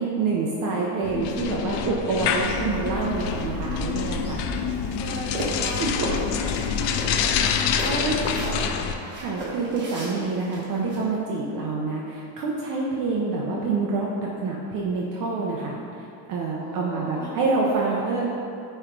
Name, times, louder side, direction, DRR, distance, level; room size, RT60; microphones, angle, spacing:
voice 1, 0.0-4.5 5.8-6.1 6.4-6.7 7.8-8.2 9.2-14.1 14.4-18.3, right 3 dB, 40° right, -3 dB, 0.8 m, -27 dB
sound 1, 1.0-8.9, left 7 dB, 55° left, 0.5 m, -27 dB
Bird vocalization bird call bird song / Telephone, 2.4-7.4, equal, 30° left, 0.9 m, -36 dB
voice 2, 5.0-9.2 16.6-17.4, equal, 10° left, -9 dB, 1.3 m, -38 dB
sound 2, 5.1-6.2 6.6-6.7 7.0-8.7 9.1-11.0, right 1 dB, 20° right, 1.4 m, -34 dB
9.7 x 3.4 x 4.5 m, 2.6 s
cardioid pair, 160°, 50 cm